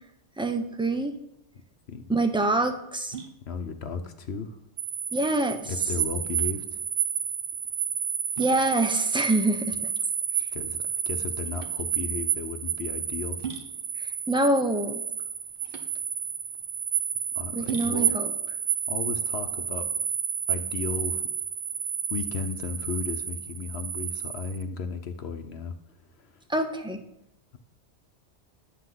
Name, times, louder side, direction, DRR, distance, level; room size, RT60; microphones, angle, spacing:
voice 1, 0.4-1.2 2.1-3.1 5.1-5.7 8.4-9.9 10.4-10.5 14.0-15.0 17.5-18.3 26.5-27.0, right 2 dB, 5° right, 6 dB, 1.0 m, -26 dB
sound 1, 1.5-20.1, right 5 dB, 55° right, 1.3 m, -45 dB
voice 2, 3.5-4.6 5.7-6.8 10.5-10.8 11.1-13.4 17.3-18.1 18.9-19.9 20.5-21.3 22.1-25.7 26.2-26.4, left 5 dB, 70° left, 7 dB, 1.1 m, -34 dB
sound 2, 4.8-24.6, right 8 dB, 85° right, 1.0 m, -31 dB
11.0 x 6.1 x 7.7 m, 0.81 s
omnidirectional pair, 1.1 m